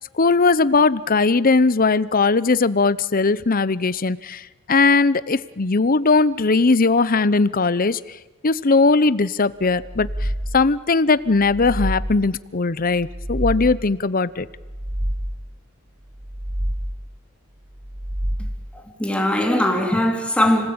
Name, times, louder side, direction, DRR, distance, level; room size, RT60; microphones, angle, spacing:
voice 1, 0.2-8.0 8.4-10.3 10.5-14.5, left 3 dB, 45° left, 0.8 m, -19 dB
sound 1, 9.7-10.8 11.3-12.4 12.9-14.0 14.5-15.6 16.1-17.2 17.7-18.8, equal, 30° right, 1.6 m, -28 dB
voice 2, 18.7-20.7, left 1 dB, 5° left, 3.7 m, -20 dB
30.0 x 19.5 x 8.8 m
head